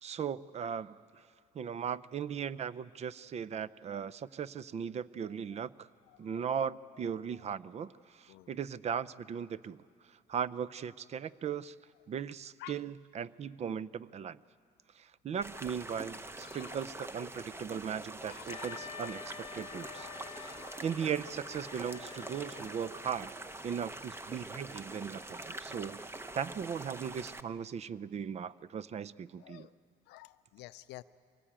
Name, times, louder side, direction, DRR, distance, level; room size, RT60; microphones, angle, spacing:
voice 1, 0.0-1.0 1.5-5.9 6.2-7.9 8.2-9.8 10.3-11.7 12.1-14.4 15.0-20.1 20.4-20.5 20.8-23.3 23.6-26.0 26.3-29.7, right 7 dB, 40° right, 18 dB, 0.5 m, -38 dB
voice 2, 6.1-6.4 7.0-7.4 8.3-8.5 12.6-12.8 16.4-16.8 18.3-19.0 19.7-20.8 29.4-29.7 30.1-31.0, left 17 dB, 85° left, 12 dB, 0.6 m, -52 dB
sound 1, 15.4-27.4, right 2 dB, 15° right, 0.8 m, -45 dB
Wind instrument woodwind instrument, 18.5-23.4, left 8 dB, 35° left, 0.8 m, -49 dB
23.5 x 18.5 x 8.8 m, 2.2 s
cardioid pair, 110°, 17 cm